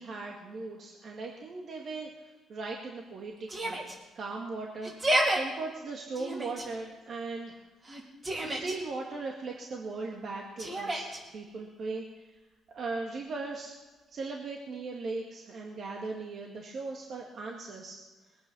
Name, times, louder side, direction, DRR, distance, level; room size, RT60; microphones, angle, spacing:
voice 1, 0.0-3.8 4.2-7.6 8.4-12.4 12.7-13.8 14.1-18.0, right 3 dB, 55° right, 0 dB, 2.0 m, -38 dB
Yell, 3.5-4.0 4.8-5.4 6.1-6.7 7.8-8.8 10.6-11.2, right 1 dB, 30° right, 4.1 m, -30 dB
21.5 x 9.4 x 6.2 m, 1.2 s
cardioid pair, 90°, 0 cm